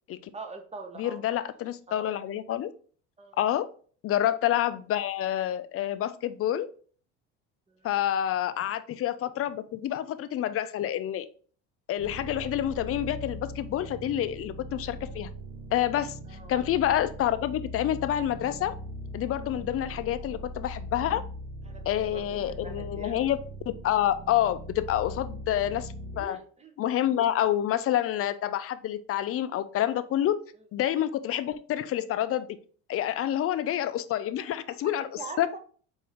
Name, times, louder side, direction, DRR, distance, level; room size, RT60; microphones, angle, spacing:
voice 1, 0.3-1.2 1.9-2.1 3.2-3.4 7.7-7.9 16.2-16.5 21.6-23.3 26.1-26.7 30.6-30.7 34.8-35.6, right 4 dB, 20° right, 5 dB, 0.9 m, -44 dB
voice 2, 1.0-2.7 3.4-3.7 4.0-6.7 7.8-11.3 11.9-15.3 15.7-18.8 19.1-21.2 21.9-23.4 23.7-26.4 26.8-30.4 30.7-32.5 32.9-35.6, left 11 dB, 40° left, 13 dB, 0.5 m, -28 dB
sound 1, 12.0-26.2, equal, 75° right, 1.3 m, -40 dB
4.6 x 2.7 x 3.4 m, 0.43 s
supercardioid pair, 85°, 34 cm